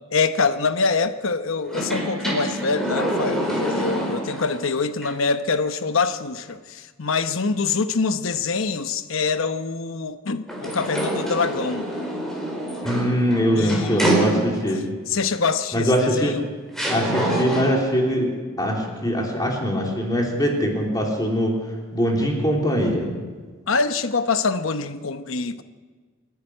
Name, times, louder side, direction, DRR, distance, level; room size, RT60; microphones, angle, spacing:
voice 1, 0.1-11.9 13.6-14.2 14.7-16.5 23.7-25.6, left 4 dB, 70° left, 0.9 m, -25 dB
sound 1, 1.7-4.6 5.0-5.1 10.5-14.8 15.9-16.0 16.7-17.9, right 1 dB, ahead, 4.8 m, -26 dB
voice 2, 12.8-14.9 15.7-16.3 16.9-18.3 18.6-21.6 21.9-23.1, equal, 20° left, 3.5 m, -22 dB
26.0 x 11.0 x 9.8 m
head